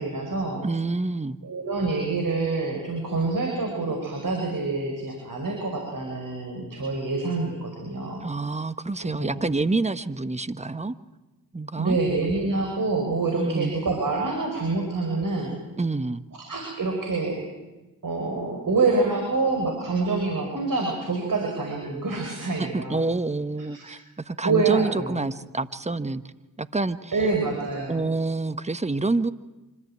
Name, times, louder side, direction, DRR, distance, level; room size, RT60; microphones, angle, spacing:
voice 1, 0.0-0.7 1.4-8.2 9.0-9.4 11.8-15.6 16.3-17.4 18.0-23.0 23.7-24.0 24.4-25.2 27.1-28.0, right 3 dB, 45° right, 2 dB, 5.4 m, -26 dB
voice 2, 0.6-1.4 8.2-10.9 11.5-12.0 13.4-13.8 15.8-16.2 22.6-26.2 26.6-27.1 27.9-29.3, right 3 dB, 15° right, 13 dB, 1.2 m, -27 dB
25.5 x 14.5 x 8.8 m, 1.1 s
hypercardioid pair, 45°, 46 cm